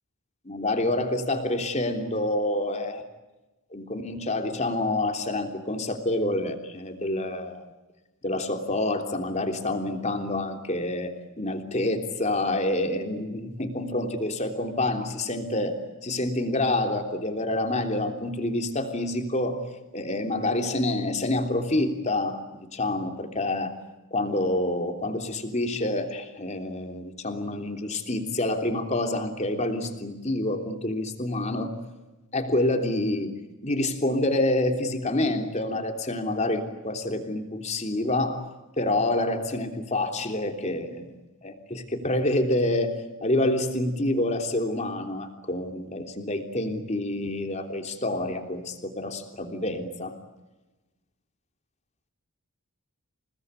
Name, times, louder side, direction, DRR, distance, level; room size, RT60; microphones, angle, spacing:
voice 1, 0.4-3.0 3.7-7.6 8.2-19.6 19.9-22.4 22.7-23.7 24.1-31.7 32.3-33.3 33.6-38.4 38.8-41.1 41.4-42.9 43.2-50.2, left 1 dB, 30° left, 5 dB, 3.3 m, -27 dB
29.0 x 19.0 x 9.7 m, 1.1 s
head